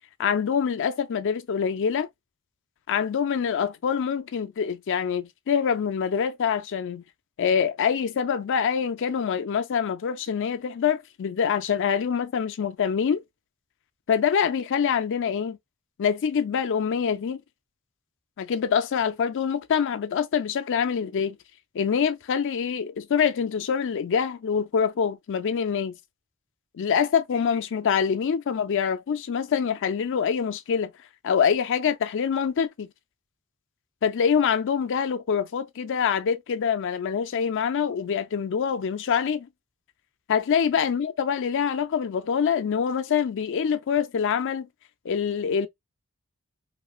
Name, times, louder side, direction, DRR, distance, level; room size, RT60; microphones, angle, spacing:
voice 1, 0.2-2.1 2.9-7.0 7.4-13.2 14.1-15.6 16.0-17.4 18.4-21.4 21.7-25.9 26.7-30.9 31.2-32.9 34.0-39.5 40.3-44.7 45.0-45.7, left 7 dB, 60° left, 0.4 m, -25 dB
3.1 x 2.9 x 2.3 m
head